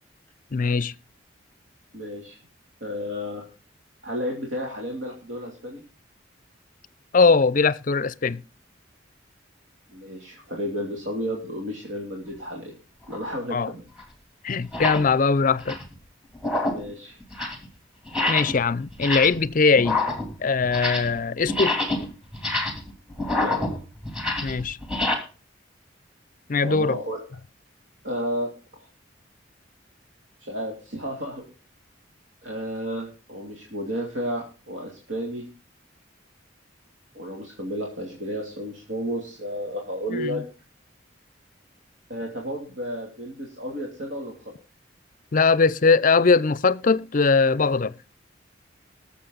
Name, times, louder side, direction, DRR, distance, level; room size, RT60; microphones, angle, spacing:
voice 1, 0.5-0.9 7.1-8.4 13.5-13.7 14.4-15.8 18.3-20.0 20.4-21.8 24.4-24.8 26.5-27.0 40.2-40.4 45.3-47.9, left 4 dB, 45° left, 0.5 m, -20 dB
voice 2, 1.9-2.4 2.8-3.5 4.0-5.8 9.9-12.7 13.1-13.8 14.7-14.8 16.7-17.2 23.3-23.5 26.6-27.2 28.0-28.9 30.4-31.4 32.4-35.5 37.1-40.4 42.1-44.3, equal, 75° right, 2.8 m, -32 dB
sound 1, 13.1-13.3 14.0-14.1 14.6-15.1 15.5-15.9 16.3-16.9 17.2-17.7 18.1-18.6 18.9-19.5 19.8-21.2 21.4-25.1, left 2 dB, 5° right, 2.9 m, -27 dB
20.0 x 7.3 x 3.9 m
head